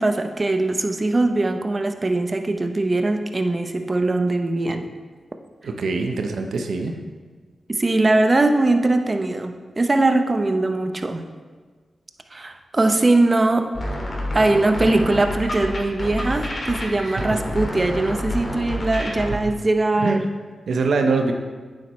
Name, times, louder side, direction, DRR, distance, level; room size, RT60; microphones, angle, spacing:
voice 1, 0.0-4.9 7.7-11.2 12.3-13.7 14.3-20.2, right 2 dB, 40° right, 6 dB, 0.8 m, -21 dB
voice 2, 5.6-6.9 17.0-17.2 20.0-20.2 20.7-21.3, right 4 dB, 80° right, 4 dB, 0.8 m, -23 dB
sound 1, 13.7-19.3, left 1 dB, 50° left, 2.0 m, -28 dB
9.1 x 7.3 x 3.2 m, 1.5 s
cardioid pair, 45°, 0 cm